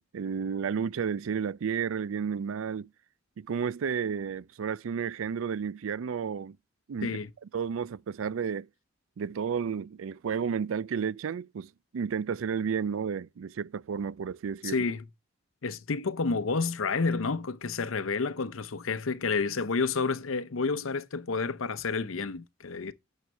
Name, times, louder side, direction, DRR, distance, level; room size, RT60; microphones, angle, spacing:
voice 1, 0.0-2.9 3.4-6.6 6.9-7.2 7.5-8.7 9.2-14.9, right 6 dB, 80° right, 0.4 m, -32 dB
voice 2, 14.6-15.0 15.6-22.9, left 4 dB, 85° left, 0.7 m, -30 dB
9.2 x 6.5 x 3.3 m
head